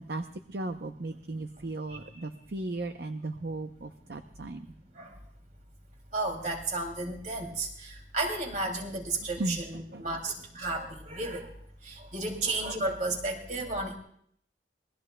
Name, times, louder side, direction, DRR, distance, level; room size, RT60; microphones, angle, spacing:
voice 1, 0.0-4.7 9.4-9.6 9.9-10.0, right 2 dB, 60° right, 6 dB, 0.7 m, -36 dB
voice 2, 6.1-11.5 11.9-14.0, right 2 dB, 45° right, 3 dB, 2.7 m, -33 dB
27.0 x 20.5 x 2.2 m, 0.67 s
head